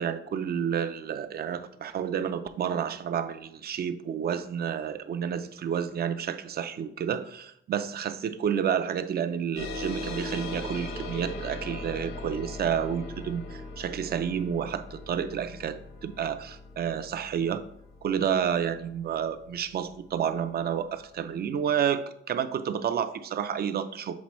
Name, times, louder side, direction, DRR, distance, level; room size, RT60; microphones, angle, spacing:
voice 1, 0.0-17.6 18.0-24.2, right 8 dB, 50° right, 11 dB, 0.5 m, -30 dB
sound 1, 9.6-20.5, left 2 dB, 80° left, 1.2 m, -39 dB
7.2 x 4.3 x 3.1 m, 0.70 s
cardioid pair, 120°, 21 cm